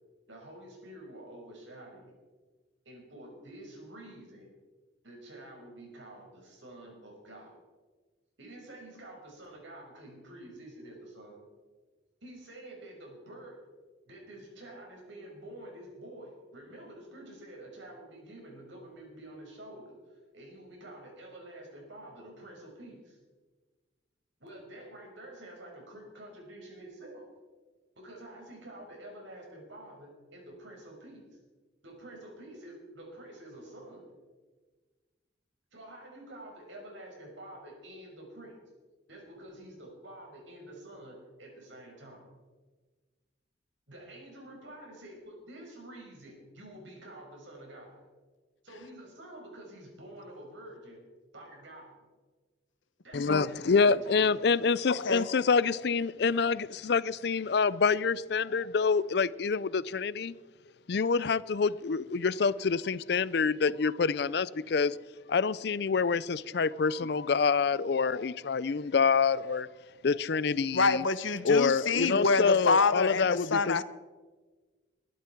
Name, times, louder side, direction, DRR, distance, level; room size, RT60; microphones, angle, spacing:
voice 1, 0.3-2.2 2.9-4.5 5.0-7.6 8.4-11.4 12.2-13.6 14.1-23.2 24.4-27.3 28.0-31.4 31.8-34.1 35.7-38.6 39.1-42.2 43.9-48.1 48.6-51.0 51.3-51.9 53.0-54.2, right 1 dB, 75° right, 0 dB, 5.5 m, -48 dB
voice 2, 53.1-60.3 60.9-65.0 65.3-69.7 70.0-71.0 71.4-73.8, left 5 dB, 60° left, 19 dB, 0.4 m, -27 dB
voice 3, 70.7-73.8, left 4 dB, 85° left, 14 dB, 0.9 m, -26 dB
22.0 x 12.0 x 4.6 m, 1.4 s
head